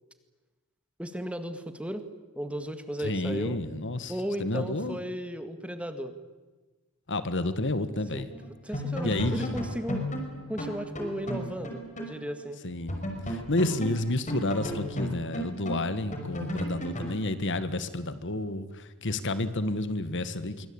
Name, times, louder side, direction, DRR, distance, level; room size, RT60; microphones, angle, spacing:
voice 1, 1.0-2.1 2.4-3.6 4.1-6.1 8.1-8.2 8.6-10.0 10.5-12.6, equal, 5° right, 9 dB, 1.9 m, -35 dB
voice 2, 3.0-4.1 4.4-5.0 7.1-8.3 9.0-9.7 12.6-20.7, left 2 dB, 55° left, 12 dB, 1.7 m, -30 dB
sound 1, 8.3-8.5 8.7-12.2 12.4-12.5 12.9-17.2, equal, 35° left, 5.5 m, -34 dB
26.0 x 24.0 x 8.8 m, 1.3 s
head